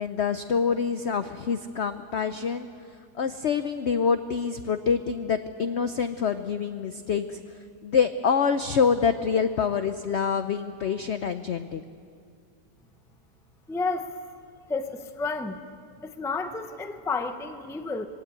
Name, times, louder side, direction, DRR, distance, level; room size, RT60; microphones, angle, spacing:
voice 1, 0.0-2.7 3.2-7.4 7.8-11.8, left 6 dB, 65° left, 10 dB, 0.6 m, -26 dB
voice 2, 13.7-14.1 14.7-15.6 16.0-18.1, left 3 dB, 5° left, 7 dB, 0.4 m, -31 dB
22.5 x 16.5 x 8.9 m, 2.3 s
omnidirectional pair, 1.9 m